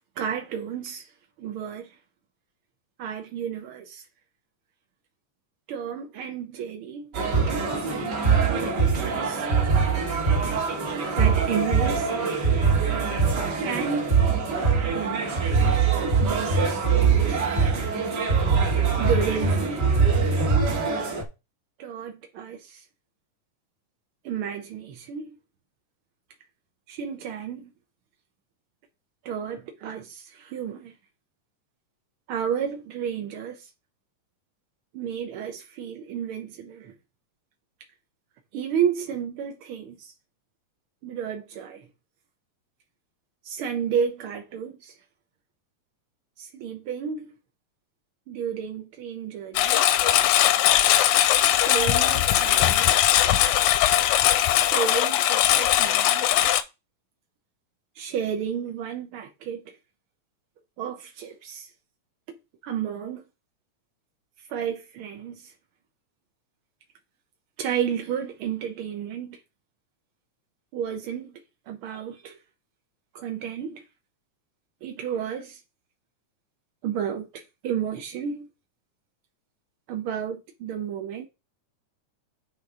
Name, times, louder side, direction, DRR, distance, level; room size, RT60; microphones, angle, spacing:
voice 1, 0.2-1.1 1.4-1.9 3.0-4.1 5.7-7.2 8.4-9.4 11.2-12.1 13.6-14.2 14.9-15.3 16.2-17.4 19.0-19.9 21.8-22.8 24.2-25.4 26.9-27.7 29.2-30.9 32.3-33.7 34.9-36.9 38.5-40.1 41.0-41.9 43.4-44.9 46.4-47.3 48.3-49.9 51.6-53.1 54.6-56.3 57.9-59.8 60.8-61.7 62.6-63.2 64.5-65.5 67.6-69.4 70.7-71.3 71.7-72.4 73.1-73.8 74.8-75.6 76.8-78.5 79.9-81.3, right 8 dB, 75° right, 1.2 m, -32 dB
sound 1, 7.1-21.2, right 5 dB, 45° right, 1.6 m, -23 dB
Engine, 49.5-56.6, left 12 dB, 80° left, 2.0 m, -20 dB
9.3 x 4.5 x 3.7 m
omnidirectional pair, 3.5 m